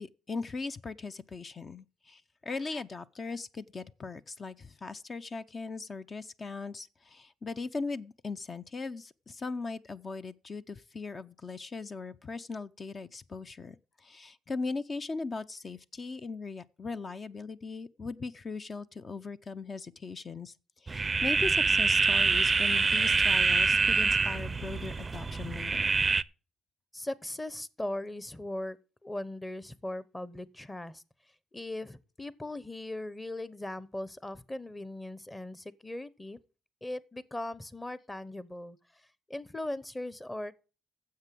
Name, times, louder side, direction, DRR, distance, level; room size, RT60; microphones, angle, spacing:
voice 1, 0.0-26.0, left 4 dB, 35° left, 0.5 m, -39 dB
sound 1, 20.9-26.2, right 4 dB, 30° right, 0.5 m, -26 dB
voice 2, 26.9-28.8 29.0-31.0 31.5-36.4 36.8-38.8 39.3-40.5, left 1 dB, 15° left, 0.9 m, -39 dB
9.5 x 7.5 x 7.6 m
cardioid pair, 90°, 0 cm